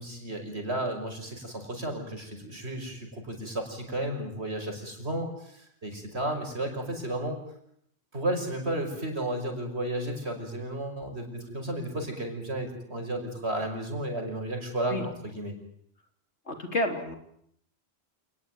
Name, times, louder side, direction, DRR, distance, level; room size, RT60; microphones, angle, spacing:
voice 1, 0.0-7.4 8.1-15.5, right 1 dB, 70° right, 4 dB, 6.0 m, -33 dB
voice 2, 16.5-17.2, left 1 dB, 90° left, 5 dB, 3.8 m, -30 dB
28.5 x 20.0 x 9.2 m, 0.71 s
omnidirectional pair, 1.1 m